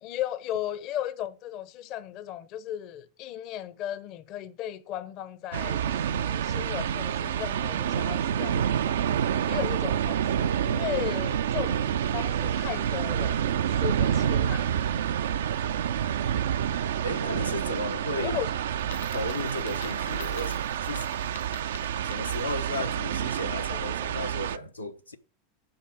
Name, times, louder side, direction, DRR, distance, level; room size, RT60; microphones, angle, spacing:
voice 1, 0.0-9.0 9.4-10.5 10.7-13.4 13.7-14.7 18.2-18.5 18.8-18.9 22.8-22.9 23.4-24.0, left 11 dB, 45° left, 0.7 m, -36 dB
sound 1, 5.5-24.6, right 9 dB, 65° right, 0.4 m, -28 dB
voice 2, 17.0-18.4 19.1-21.1 22.0-25.2, left 1 dB, 85° left, 0.9 m, -34 dB
Coin (dropping), 18.8-22.7, left 9 dB, 65° left, 1.5 m, -47 dB
8.8 x 6.5 x 6.1 m
figure-of-eight pair, 85°, 0 cm